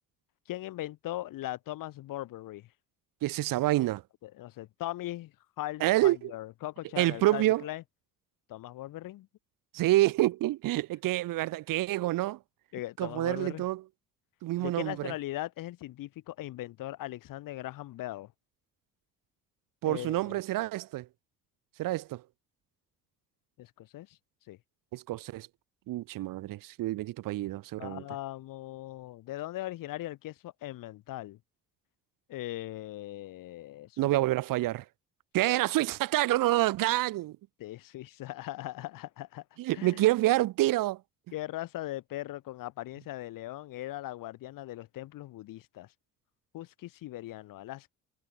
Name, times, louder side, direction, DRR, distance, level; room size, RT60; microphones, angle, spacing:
voice 1, 0.5-2.7 4.2-7.8 8.5-9.3 12.7-13.7 14.6-18.3 19.8-20.4 23.6-24.2 24.5-24.6 27.8-31.4 32.3-34.1 37.6-39.4 39.7-40.1 41.3-45.9 46.5-47.9, left 15 dB, 85° left, 2.2 m, -39 dB
voice 2, 3.2-4.0 5.8-6.3 7.0-7.6 9.7-12.4 13.0-13.8 14.4-15.1 19.8-21.1 21.8-22.2 24.9-25.5 25.9-28.0 34.0-34.8 35.3-37.3 39.6-41.0, right 16 dB, 85° right, 1.3 m, -27 dB
cardioid pair, 120°, 32 cm